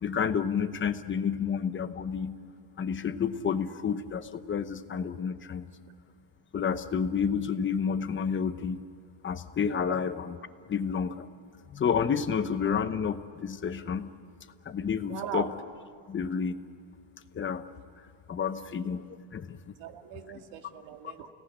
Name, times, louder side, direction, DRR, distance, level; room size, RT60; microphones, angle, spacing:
voice 1, 0.0-2.4 2.8-5.7 6.5-8.8 9.2-10.4 10.7-11.3 11.7-14.1 14.6-15.5 16.1-16.6 17.3-17.6 18.3-19.7, left 6 dB, 25° left, 11 dB, 0.9 m, -30 dB
voice 2, 15.1-15.5 18.4-18.8 19.8-21.3, right 9 dB, 75° right, 5 dB, 2.3 m, -40 dB
30.0 x 18.0 x 10.0 m, 2.1 s
cardioid pair, 150°, 48 cm